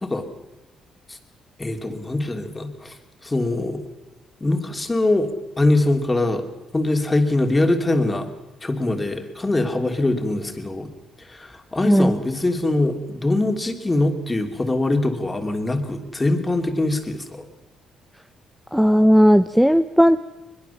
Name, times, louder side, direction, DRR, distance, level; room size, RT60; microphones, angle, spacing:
voice 1, 1.6-3.0 3.2-3.8 4.4-6.5 6.7-8.3 8.6-10.9 11.2-17.5, left 2 dB, 20° left, 6 dB, 3.1 m, -23 dB
voice 2, 11.8-12.2 18.7-20.2, equal, ahead, 11 dB, 0.8 m, -15 dB
22.0 x 21.5 x 7.2 m, 1.1 s
cardioid pair, 90°, 0 cm